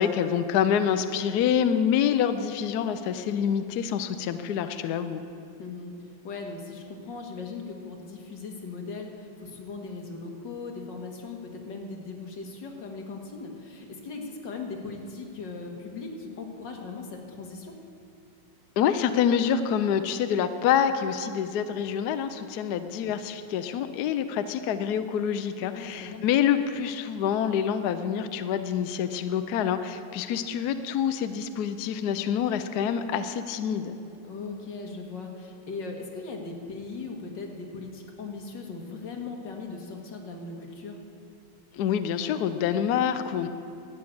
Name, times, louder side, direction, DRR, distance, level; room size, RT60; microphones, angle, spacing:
voice 1, 0.0-5.2 18.8-34.0 41.7-43.5, left 8 dB, 75° left, 10 dB, 0.9 m, -26 dB
voice 2, 5.6-5.9 6.2-17.7 25.7-26.2 34.2-41.0, left 4 dB, 60° left, 1 dB, 2.1 m, -39 dB
12.5 x 8.3 x 8.7 m, 2.7 s
omnidirectional pair, 2.3 m